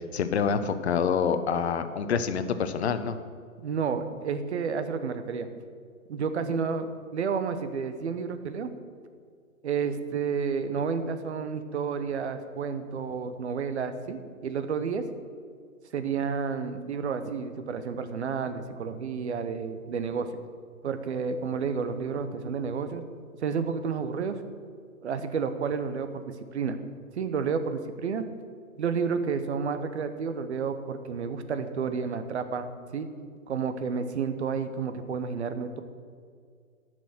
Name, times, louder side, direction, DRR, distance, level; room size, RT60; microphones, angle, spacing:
voice 1, 0.1-3.2, left 6 dB, 50° left, 11 dB, 0.9 m, -26 dB
voice 2, 3.6-5.5 6.1-8.7 9.6-15.1 15.9-20.4 20.8-23.0 23.4-24.4 25.0-26.8 27.2-28.2 28.8-33.1 33.5-35.8, right 6 dB, 50° right, 9 dB, 1.0 m, -31 dB
10.0 x 6.3 x 7.8 m, 2.1 s
figure-of-eight pair, 130°, 43 cm